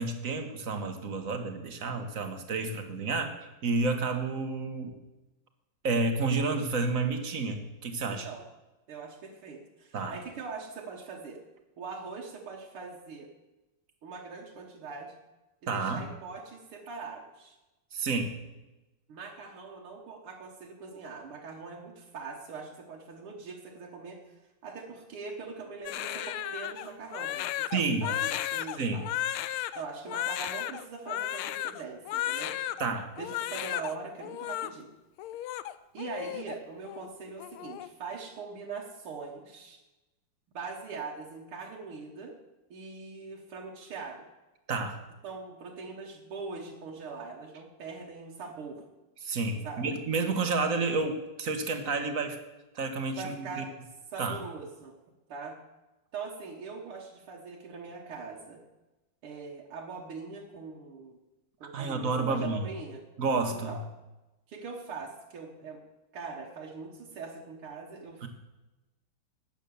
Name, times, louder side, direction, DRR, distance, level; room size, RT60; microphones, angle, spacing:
voice 1, 0.0-3.3 3.6-4.9 5.8-8.3 9.9-10.1 15.7-16.0 17.9-18.3 27.7-28.1 28.8-29.1 32.8-33.1 44.7-45.0 49.2-52.4 52.7-53.6 54.2-54.4 61.7-62.7 63.2-63.7 68.2-68.3, right 3 dB, 45° right, 7 dB, 1.5 m, -30 dB
voice 2, 8.0-8.4 8.9-11.4 11.8-13.3 14.0-15.1 15.6-17.6 19.1-29.0 29.8-32.5 33.2-34.9 35.9-39.8 40.5-42.4 42.7-44.2 45.2-48.8 49.6-49.9 53.2-53.7 54.1-54.9 55.3-55.6 56.1-58.6 59.2-61.2 61.6-63.0 63.5-63.8 64.5-65.8 66.1-68.3, right 4 dB, 80° right, -1 dB, 2.3 m, -42 dB
Crying sobbing, 25.9-32.9 33.2-33.9 34.2-34.7 35.2-36.6 36.8-37.1 37.4-37.9, left 13 dB, 80° left, 1.4 m, -34 dB
12.5 x 9.2 x 7.0 m, 1.0 s
omnidirectional pair, 2.4 m